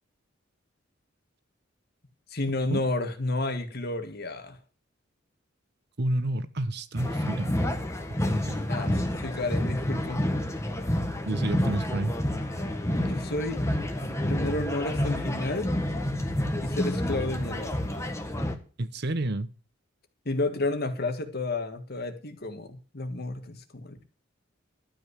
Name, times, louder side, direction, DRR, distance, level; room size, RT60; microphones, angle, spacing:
voice 1, 2.3-4.6 8.7-10.3 13.0-13.6 14.3-15.7 16.6-17.8 20.3-24.0, left 2 dB, 55° left, 1.8 m, -31 dB
voice 2, 6.0-7.8 8.1-8.6 11.3-12.2 18.8-19.5, right 1 dB, 55° right, 1.0 m, -30 dB
sound 1, 7.0-18.6, left 1 dB, 15° left, 1.4 m, -29 dB
12.5 x 5.6 x 8.2 m
head